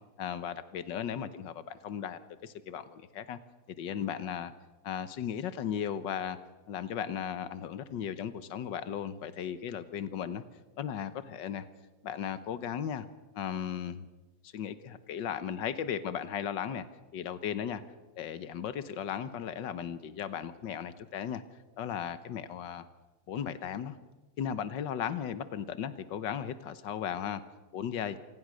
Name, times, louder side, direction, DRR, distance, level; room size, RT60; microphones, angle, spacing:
voice 1, 0.2-3.4 3.8-4.5 4.8-6.4 6.7-10.4 10.8-11.6 12.0-13.1 13.4-14.1 14.4-16.9 17.1-17.8 18.2-21.4 21.8-22.9 23.3-24.0 24.4-27.4 27.7-28.2, left 8 dB, 80° left, 12 dB, 1.8 m, -36 dB
26.5 x 19.0 x 6.4 m, 1.1 s
omnidirectional pair, 2.0 m